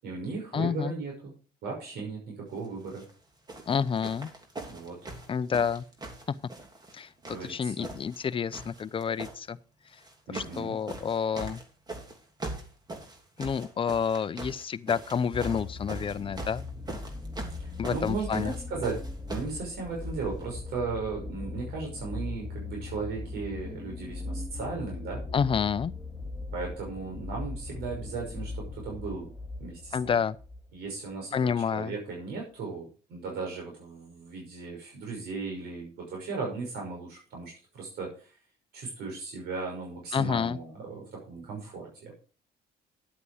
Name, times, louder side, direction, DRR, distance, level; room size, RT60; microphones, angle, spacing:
voice 1, 0.0-1.3 1.6-3.0 4.7-5.0 7.3-7.7 10.3-10.8 17.6-19.0 19.3-25.2 26.5-29.3 29.6-30.1 30.7-38.3 38.7-42.1, right 4 dB, 70° right, 5.7 m, -36 dB
voice 2, 0.5-0.9 3.7-4.3 5.3-5.8 6.9-9.6 10.3-11.6 13.4-16.6 17.8-18.5 25.3-25.9 29.9-30.4 31.3-31.9 40.1-40.6, left 7 dB, 30° left, 0.6 m, -29 dB
sound 1, 2.8-3.1 3.5-7.0 7.2-8.2 8.5-9.4 10.0-10.6 10.9-19.6 20.4-20.5, right 2 dB, 25° right, 2.9 m, -41 dB
sound 2, 15.3-30.7 31.5-31.6, left 3 dB, ahead, 2.7 m, -39 dB
11.0 x 8.2 x 5.0 m
cardioid pair, 110°, 17 cm